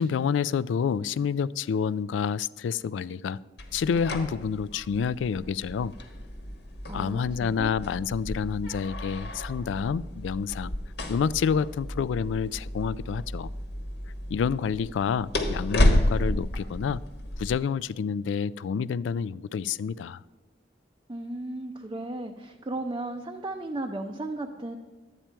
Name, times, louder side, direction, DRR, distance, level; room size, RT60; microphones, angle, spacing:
voice 1, 0.0-3.4 3.7-5.9 6.9-10.7 11.1-13.5 14.3-17.0 17.4-20.2, left 6 dB, 90° left, 19 dB, 0.3 m, -28 dB
sound 1, 3.6-17.5, left 1 dB, 65° left, 1.2 m, -31 dB
voice 2, 6.9-7.7 21.1-24.8, right 2 dB, 25° right, 3 dB, 0.5 m, -35 dB
11.5 x 8.8 x 4.5 m, 1.3 s
head